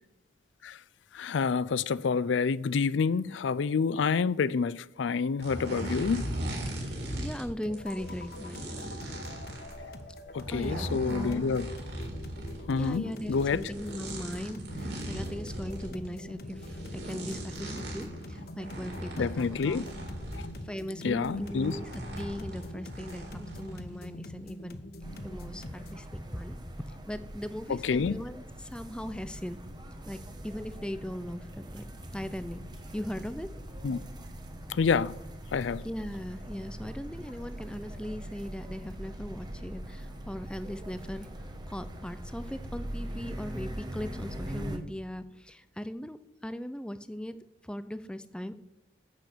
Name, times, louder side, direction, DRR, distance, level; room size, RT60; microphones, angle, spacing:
voice 1, 1.1-6.3 10.3-11.7 12.7-13.6 19.2-19.8 20.4-20.5 21.0-21.8 27.7-28.2 33.8-34.0 34.7-35.1 35.5-35.8, left 5 dB, 90° left, 0.4 m, -28 dB
sound 1, 5.4-7.5 7.7-20.6 21.1-24.1 24.4-24.7, right 1 dB, 70° right, 3.8 m, -39 dB
voice 2, 6.9-8.9 10.5-11.5 12.7-19.8 20.6-21.9 22.2-24.8 25.2-29.6 30.1-31.8 32.1-32.6 32.9-33.5 35.8-41.3 41.7-47.4 47.6-48.6, equal, 5° left, 0.5 m, -39 dB
sound 2, 7.6-26.1, left 1 dB, 55° left, 1.0 m, -45 dB
sound 3, 25.0-44.8, right 1 dB, 25° right, 1.1 m, -42 dB
10.5 x 8.5 x 6.7 m
head